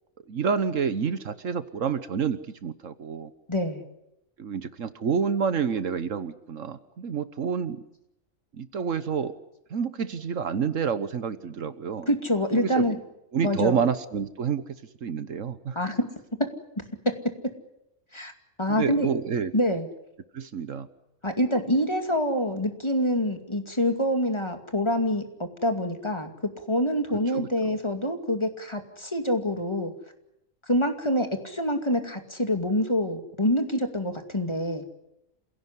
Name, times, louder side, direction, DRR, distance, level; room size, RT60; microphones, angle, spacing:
voice 1, 0.3-3.3 4.4-7.8 8.6-9.3 9.7-12.1 12.5-12.9 13.3-14.6 15.0-15.8 18.7-19.5 20.3-20.9 27.3-27.5, right 6 dB, 70° right, 13 dB, 1.5 m, -28 dB
voice 2, 3.5-3.8 12.1-13.0 13.4-13.8 15.7-16.1 18.1-18.3 18.6-19.1 19.5-19.9 21.2-26.3 26.7-29.9 30.7-34.8, equal, 20° left, 5 dB, 2.5 m, -26 dB
27.5 x 17.0 x 9.9 m, 0.84 s
omnidirectional pair, 1.4 m